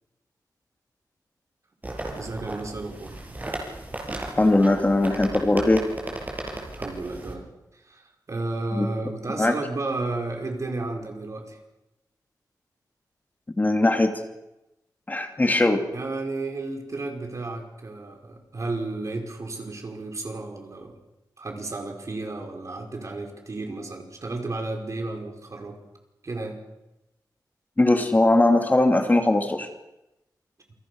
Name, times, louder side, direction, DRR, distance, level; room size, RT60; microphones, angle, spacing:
sound 1, 1.8-7.3, right 1 dB, 25° right, 7.1 m, -35 dB
voice 1, 2.2-3.2 6.7-11.6 15.9-21.0 21.4-25.8 26.2-26.6, right 2 dB, 45° right, 3 dB, 5.4 m, -33 dB
voice 2, 4.4-5.9 8.7-8.9 9.4-9.5 13.6-14.2 15.1-15.8 27.8-29.7, left 2 dB, 25° left, 5 dB, 2.7 m, -20 dB
28.5 x 23.0 x 6.4 m, 0.94 s
wide cardioid pair, 95°, 7 cm